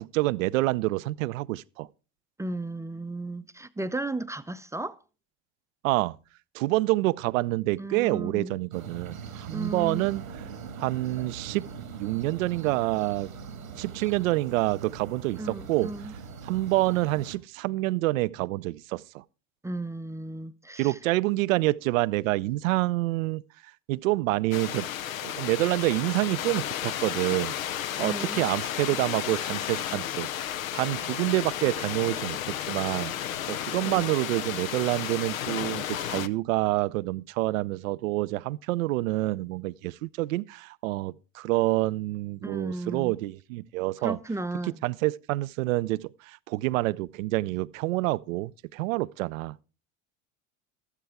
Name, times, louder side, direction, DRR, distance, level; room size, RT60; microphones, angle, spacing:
voice 1, 0.0-1.9 5.8-6.2 6.5-10.2 10.8-11.6 11.9-13.3 13.7-15.9 16.4-19.2 20.8-23.4 23.9-24.9 25.2-27.5 28.0-30.3 30.7-33.1 33.5-44.2 44.8-49.6, right 19 dB, 70° right, 0.5 m, -27 dB
voice 2, 2.4-5.0 7.8-8.5 9.5-10.2 15.4-16.1 19.6-21.0 28.0-28.5 33.9-34.1 42.4-43.2 44.0-44.8, right 2 dB, 5° right, 0.5 m, -35 dB
sound 1, 8.7-17.4, right 6 dB, 90° right, 1.7 m, -42 dB
sound 2, 24.5-36.3, left 11 dB, 80° left, 0.7 m, -33 dB
13.0 x 13.0 x 3.5 m
hypercardioid pair, 70°, 41 cm